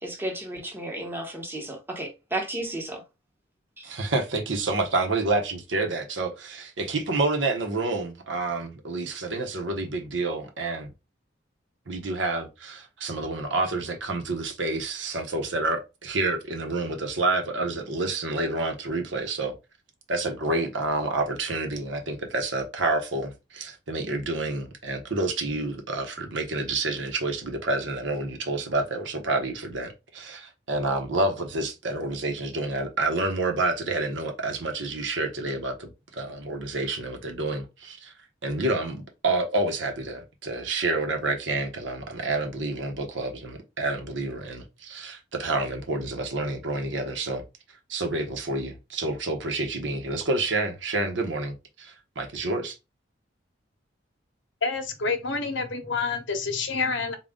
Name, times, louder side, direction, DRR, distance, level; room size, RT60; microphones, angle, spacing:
voice 1, 0.0-3.0 3.8-4.0, right 1 dB, 10° right, 1.0 m, -33 dB
voice 2, 3.8-10.9 11.9-19.5 20.1-38.1 38.4-47.4 47.9-52.8, right 2 dB, 70° right, 0.9 m, -28 dB
voice 3, 54.6-57.1, left 4 dB, 75° left, 0.8 m, -28 dB
3.8 x 2.3 x 3.6 m
head